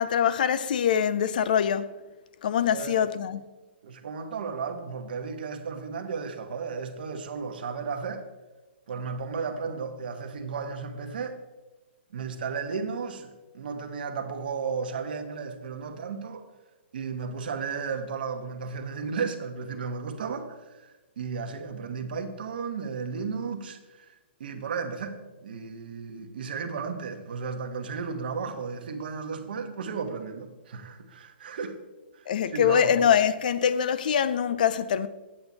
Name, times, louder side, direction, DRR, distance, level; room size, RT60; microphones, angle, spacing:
voice 1, 0.0-1.9 2.4-3.4 32.3-35.1, left 8 dB, 45° left, 0.4 m, -24 dB
voice 2, 2.7-3.0 3.8-8.3 8.9-11.4 12.1-16.5 16.9-24.1 24.4-31.8 32.1-32.3 32.5-33.0, right 5 dB, 50° right, 1.1 m, -34 dB
8.7 x 7.8 x 4.0 m
hypercardioid pair, 170°, 6 cm